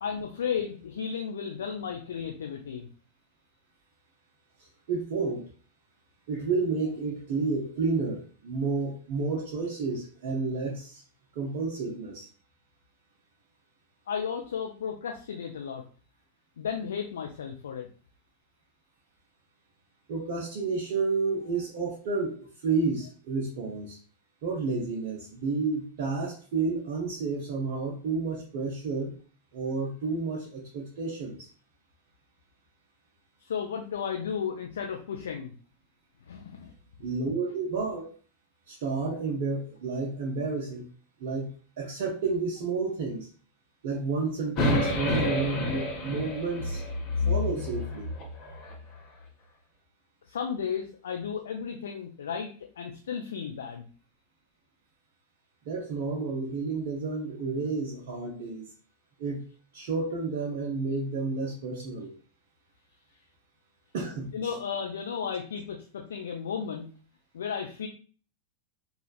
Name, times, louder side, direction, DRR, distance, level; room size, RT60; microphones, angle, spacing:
voice 1, 0.0-2.9 14.1-15.8 16.6-17.9 33.4-35.5 36.3-36.7 50.3-52.5 52.8-53.9 64.3-66.9 67.3-67.9, left 7 dB, 65° left, 2 dB, 0.3 m, -34 dB
voice 2, 4.9-5.4 6.3-11.0 11.3-12.3 20.1-24.0 24.4-29.1 29.5-31.5 37.0-38.1 38.7-40.8 41.2-43.3 43.8-46.8 47.3-48.1 55.6-58.7 59.2-59.4 59.7-62.1 63.9-64.3, right 4 dB, 50° right, -2 dB, 0.5 m, -31 dB
sound 1, 44.5-48.8, left 2 dB, 35° left, 0.7 m, -29 dB
3.1 x 2.3 x 2.3 m, 0.40 s
figure-of-eight pair, 90°, 0 cm